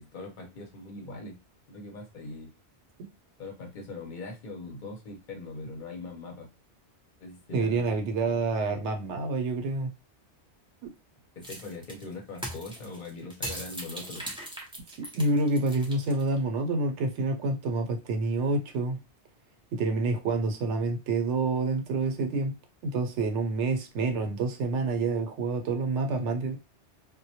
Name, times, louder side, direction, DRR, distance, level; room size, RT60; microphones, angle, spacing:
voice 1, 0.0-1.4 1.7-2.5 3.4-6.5 7.2-7.9 11.4-14.2, left 3 dB, 50° left, 0.8 m, -41 dB
voice 2, 7.5-9.9 10.8-10.9 15.1-19.0 19.7-22.5 22.8-26.6, right 3 dB, 80° right, 0.9 m, -28 dB
sound 1, 11.4-16.4, right 1 dB, 10° right, 0.3 m, -39 dB
2.1 x 2.1 x 2.7 m
omnidirectional pair, 1.2 m